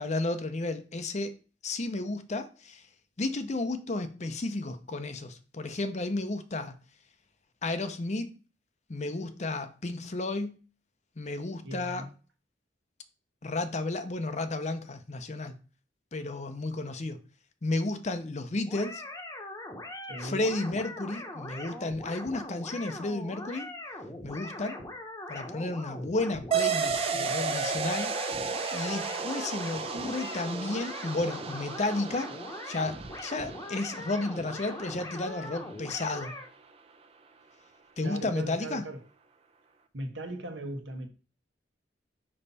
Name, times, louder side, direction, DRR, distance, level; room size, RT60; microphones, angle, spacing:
voice 1, 0.0-1.3 1.6-2.8 3.2-6.7 7.6-8.3 8.9-10.6 11.2-12.1 13.4-15.5 16.1-17.2 17.6-19.0 20.2-23.7 24.2-24.8 25.3-28.1 28.7-32.3 32.6-36.3 38.0-38.9, left 2 dB, 40° left, 0.7 m, -32 dB
voice 2, 11.6-12.1 20.1-20.5 38.0-39.0 39.9-41.1, right 1 dB, 75° right, 1.3 m, -38 dB
sound 1, 18.7-36.5, left 1 dB, 20° left, 1.0 m, -41 dB
sound 2, 26.5-35.5, right 5 dB, 30° right, 0.6 m, -34 dB
5.5 x 5.4 x 4.1 m
head